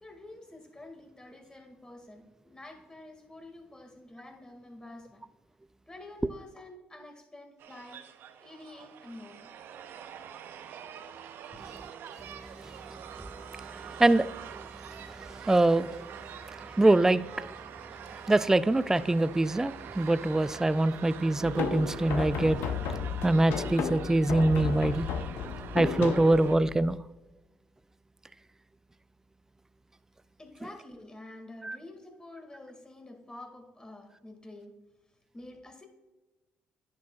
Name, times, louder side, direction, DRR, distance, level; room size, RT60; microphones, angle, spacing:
voice 1, 0.0-5.3 5.9-8.1 8.4-9.5 30.4-34.8 35.3-35.8, left 2 dB, 20° left, 4 dB, 2.0 m, -48 dB
sound 1, 7.6-26.6, right 9 dB, 65° right, 0.6 m, -45 dB
voice 2, 12.3-13.3 13.5-16.0 16.5-17.5 18.1-22.7 23.2-25.1 25.7-27.0 31.6-31.8, right 2 dB, 15° right, 15 dB, 0.4 m, -25 dB
sound 2, 21.4-27.0, left 6 dB, 75° left, 0.8 m, -33 dB
10.5 x 8.4 x 2.3 m, 1.1 s
supercardioid pair, 60°, 4 cm